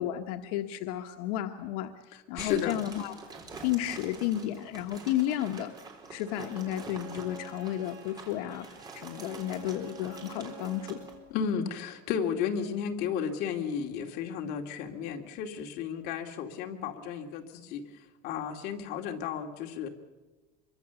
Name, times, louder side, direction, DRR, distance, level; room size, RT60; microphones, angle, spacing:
voice 1, 0.0-1.9 2.3-3.1 3.6-5.7 6.1-8.7 8.9-11.0, left 12 dB, 85° left, 5 dB, 1.2 m, -32 dB
voice 2, 2.3-2.8 11.3-17.8 18.2-19.9, left 7 dB, 55° left, 3 dB, 2.5 m, -33 dB
Sounds For Earthquakes - Textile, 2.4-11.2, right 4 dB, 20° right, 4.0 m, -46 dB
Bowed string instrument, 5.9-11.2, right 3 dB, 45° right, 5.5 m, -49 dB
25.0 x 24.0 x 7.0 m, 1.2 s
cardioid pair, 165°, 19 cm